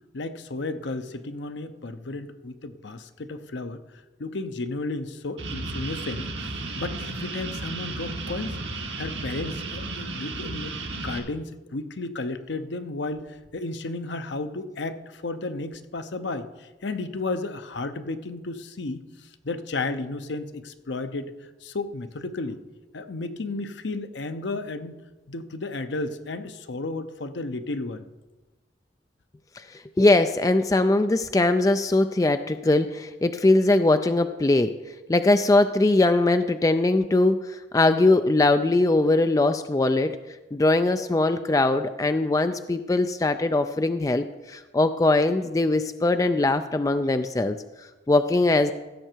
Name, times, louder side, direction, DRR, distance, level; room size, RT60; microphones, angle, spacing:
voice 1, 0.1-3.8 4.2-6.3 6.8-8.6 9.0-21.3 21.6-22.6 22.9-25.0 25.3-28.1, left 3 dB, 80° left, 9 dB, 0.7 m, -33 dB
sound 1, 5.4-11.2, right 3 dB, 85° right, 1.4 m, -33 dB
voice 2, 29.6-34.7 35.1-40.2 40.5-47.6 48.1-48.7, left 2 dB, 20° left, 9 dB, 0.3 m, -21 dB
15.5 x 6.7 x 4.5 m, 1.1 s
head